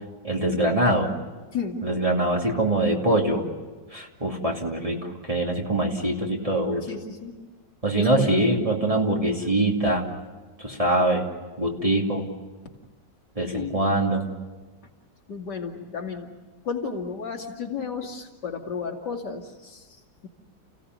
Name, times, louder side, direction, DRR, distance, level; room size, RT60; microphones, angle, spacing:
voice 1, 0.2-1.2 1.8-3.5 3.9-6.8 7.8-10.1 10.6-11.3 11.6-12.3 13.4-14.3, right 1 dB, 20° right, 0 dB, 2.6 m, -23 dB
voice 2, 6.9-7.3 8.0-8.4 13.5-13.7 15.3-16.3 16.6-19.9, left 5 dB, 70° left, 2 dB, 2.9 m, -33 dB
30.0 x 16.5 x 9.5 m, 1.3 s
omnidirectional pair, 1.9 m